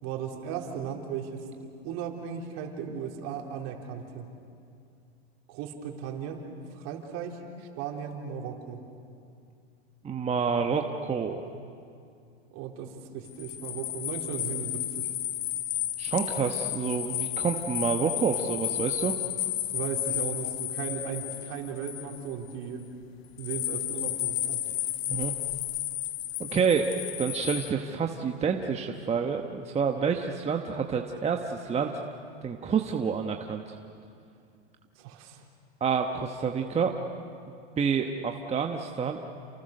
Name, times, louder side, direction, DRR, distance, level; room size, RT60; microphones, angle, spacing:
voice 1, 0.0-4.3 5.5-6.5 6.7-8.8 12.5-15.1 19.7-22.8 23.4-24.6 35.0-35.4, right 7 dB, 50° right, 2 dB, 4.0 m, -36 dB
voice 2, 10.0-11.4 16.0-19.1 25.1-25.3 26.4-26.9 27.2-32.0 32.4-33.6 35.8-36.9 37.8-39.2, right 6 dB, 20° right, 3 dB, 1.2 m, -28 dB
sound 1, 13.2-22.5 23.4-27.7, left 13 dB, 70° left, 1.6 m, -32 dB
29.0 x 28.5 x 6.7 m, 2.4 s
hypercardioid pair, 115°, 33 cm